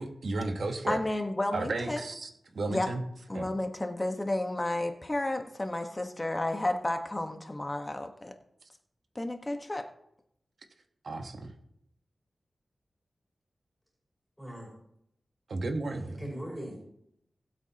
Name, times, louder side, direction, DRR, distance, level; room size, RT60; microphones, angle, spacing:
voice 1, 0.0-1.0 1.5-3.0 3.3-3.5 11.0-11.5 15.5-16.3, right 2 dB, 75° right, 5 dB, 1.4 m, -34 dB
voice 2, 0.9-2.0 2.7-2.9 3.3-8.3 9.1-9.9, left 1 dB, 25° left, 5 dB, 1.4 m, -32 dB
voice 3, 14.4-14.7 15.8-17.0, right 1 dB, 5° right, -3 dB, 5.3 m, -41 dB
20.0 x 8.2 x 3.0 m, 0.76 s
cardioid pair, 65°, 0 cm